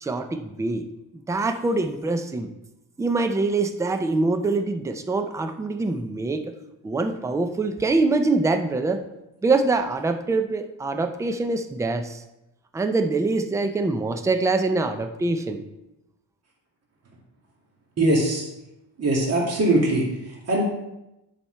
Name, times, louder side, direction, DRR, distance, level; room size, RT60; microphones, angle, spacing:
voice 1, 0.0-0.8 1.3-2.5 3.0-6.5 6.8-9.0 9.4-12.2 12.7-15.6, right 3 dB, 10° right, 7 dB, 0.4 m, -24 dB
voice 2, 18.0-18.4 19.0-20.6, right 1 dB, 35° right, -2 dB, 2.1 m, -22 dB
10.0 x 5.8 x 4.4 m, 0.92 s
cardioid pair, 170°, 44 cm